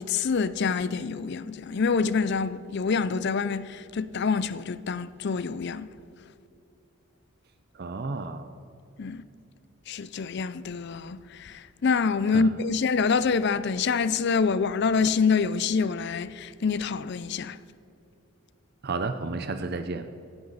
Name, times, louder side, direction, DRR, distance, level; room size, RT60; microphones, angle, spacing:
voice 1, 0.0-5.9 9.0-9.2 9.9-17.6, left 5 dB, 50° left, 0.4 m, -26 dB
voice 2, 7.7-8.5 12.3-12.5 18.8-20.1, right 3 dB, 45° right, 0.5 m, -32 dB
16.5 x 10.5 x 4.1 m
head